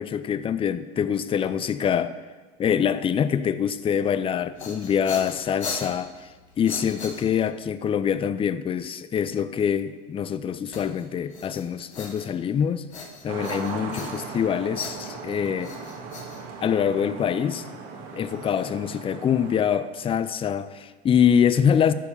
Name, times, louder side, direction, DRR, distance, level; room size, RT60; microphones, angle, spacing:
voice 1, 0.0-2.1 2.6-6.3 6.6-15.7 16.6-17.7 18.1-21.9, left 8 dB, 20° left, 0.4 m, -25 dB
sound 1, 4.3-7.7 10.7-12.6 12.9-14.4 14.7-17.0, left 4 dB, 90° left, 1.4 m, -39 dB
sound 2, 13.3-19.8, right 5 dB, 55° right, 1.7 m, -38 dB
11.0 x 4.5 x 6.9 m
hypercardioid pair, 85°, 32 cm